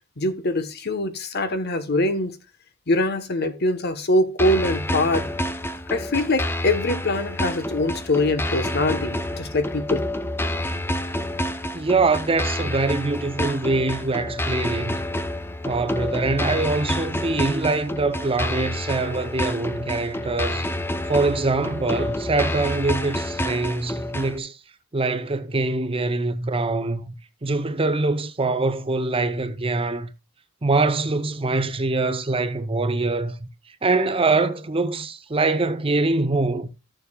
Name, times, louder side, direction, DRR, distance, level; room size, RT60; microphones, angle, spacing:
voice 1, 0.2-2.4 2.9-5.3 5.9-10.0, left 2 dB, 55° left, 1.1 m, -23 dB
sound 1, 4.4-24.4, left 1 dB, 10° left, 0.6 m, -28 dB
voice 2, 11.7-15.0 15.6-20.7 21.1-24.6 24.9-27.1 27.4-30.1 30.6-33.4 33.8-36.7, right 3 dB, 30° right, 0.7 m, -24 dB
14.0 x 6.9 x 2.3 m
head